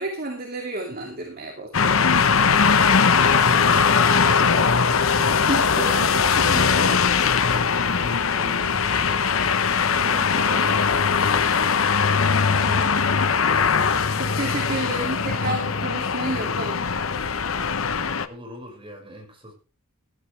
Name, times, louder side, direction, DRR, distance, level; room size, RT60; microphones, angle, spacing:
voice 1, 0.0-2.1 4.3-4.6 5.2-7.0 10.0-10.4 12.4-13.0 14.2-16.9, right 2 dB, 50° right, 2.5 m, -31 dB
sound 1, 1.7-18.3, left 5 dB, 80° left, 1.0 m, -20 dB
voice 2, 7.4-11.6 18.3-19.5, equal, 25° right, 6.0 m, -42 dB
16.0 x 13.0 x 3.4 m
head